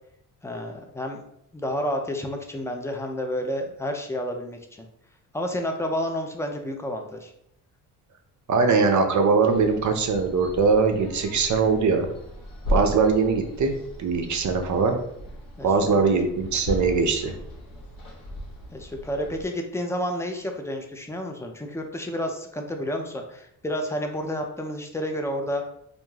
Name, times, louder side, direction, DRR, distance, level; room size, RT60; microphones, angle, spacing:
voice 1, 0.4-1.2 1.5-4.9 5.3-7.3 15.6-15.7 16.0-16.1 18.7-25.6, equal, 5° left, 3 dB, 0.5 m, -30 dB
voice 2, 8.5-12.1 12.7-13.7 14.0-15.0 15.6-17.3, right 4 dB, 40° right, 5 dB, 0.6 m, -21 dB
sound 1, 9.5-19.5, equal, 50° left, 0.9 m, -36 dB
2.5 x 2.1 x 3.2 m, 0.74 s
hypercardioid pair, 50°, 46 cm